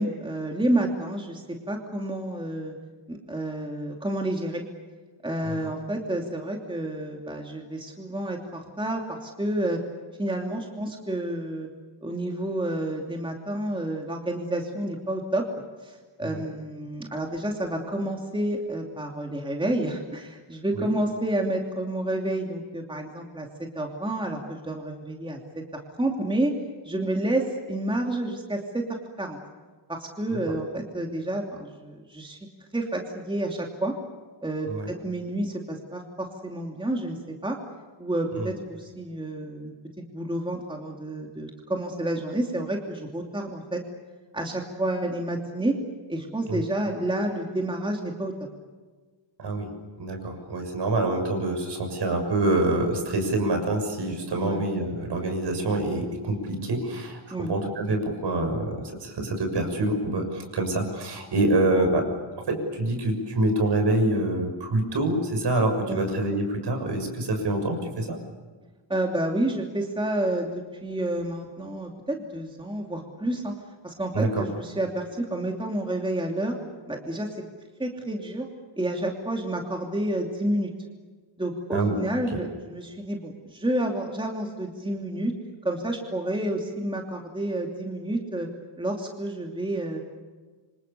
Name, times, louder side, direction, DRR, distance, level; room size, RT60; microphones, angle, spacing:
voice 1, 0.0-2.8 3.1-4.6 5.2-9.8 10.2-11.7 12.0-15.5 15.8-23.5 23.7-25.6 26.0-26.5 26.8-28.8 29.2-29.4 29.9-32.4 32.7-33.9 34.4-37.6 38.0-43.8 44.3-45.8 46.1-48.3 54.4-54.6 57.3-57.5 65.9-66.0 68.9-73.5 73.8-76.6 76.9-77.3 77.8-78.5 78.8-80.7 81.4-85.3 85.6-88.5 88.8-90.0, right 1 dB, 10° right, 1 dB, 2.9 m, -29 dB
voice 2, 49.4-49.7 50.0-62.0 62.5-68.2 74.1-74.4 81.7-82.0, right 2 dB, 60° right, 4 dB, 6.7 m, -26 dB
28.0 x 26.5 x 7.0 m, 1.4 s
wide cardioid pair, 170°, 47 cm